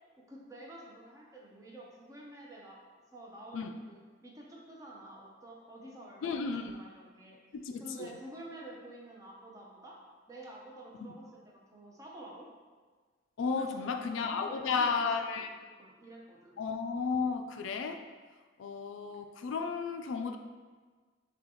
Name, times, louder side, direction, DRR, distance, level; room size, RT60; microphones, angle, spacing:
voice 1, 0.3-2.8 3.1-7.4 7.8-10.0 10.3-12.5 13.6-14.9 15.3-15.4 15.8-16.6, right 1 dB, 15° right, -3 dB, 0.7 m, -49 dB
voice 2, 6.2-6.7 7.5-8.1 13.4-15.5 16.6-18.0 18.6-20.4, left 5 dB, 85° left, 6 dB, 0.3 m, -33 dB
6.2 x 2.4 x 2.9 m, 1.4 s
head